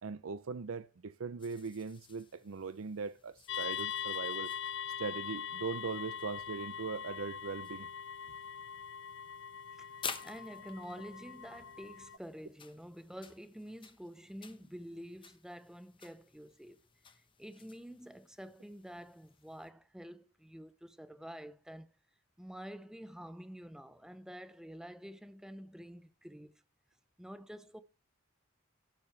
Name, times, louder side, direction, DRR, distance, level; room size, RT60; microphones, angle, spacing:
voice 1, 0.0-4.5 5.0-7.9, right 5 dB, 85° right, 0.6 m, -40 dB
sound 1, 1.4-19.7, left 6 dB, 25° left, 1.0 m, -52 dB
sound 2, 3.5-12.2, left 8 dB, 60° left, 0.5 m, -42 dB
voice 2, 9.8-16.8 17.4-21.9 22.4-26.5 27.2-27.8, equal, 5° right, 0.8 m, -48 dB
17.5 x 7.8 x 3.3 m
head